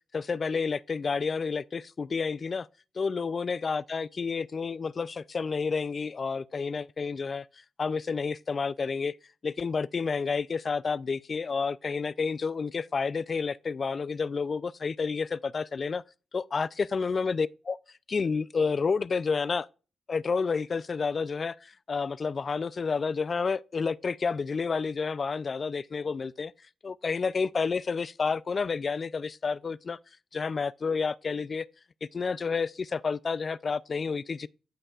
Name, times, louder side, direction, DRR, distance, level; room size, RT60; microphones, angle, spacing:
voice 1, 0.1-2.7 3.0-7.5 7.8-9.2 9.4-16.0 16.3-17.8 18.1-19.7 20.1-26.5 26.8-30.0 30.3-31.7 32.0-34.5, left 5 dB, 45° left, 0.3 m, -30 dB
14.5 x 5.5 x 2.4 m
cardioid pair, 80°, 0 cm